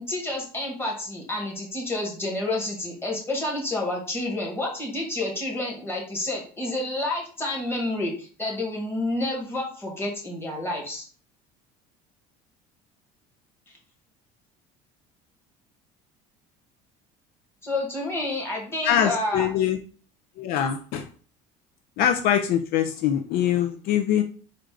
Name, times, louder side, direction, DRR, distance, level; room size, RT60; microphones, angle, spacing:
voice 1, 0.1-11.0 17.6-19.5, left 2 dB, 15° left, -2 dB, 1.7 m, -29 dB
voice 2, 18.8-19.8 20.4-21.1 22.0-24.2, left 9 dB, 65° left, 7 dB, 0.5 m, -23 dB
4.3 x 2.5 x 4.8 m, 0.41 s
cardioid pair, 130°, 17 cm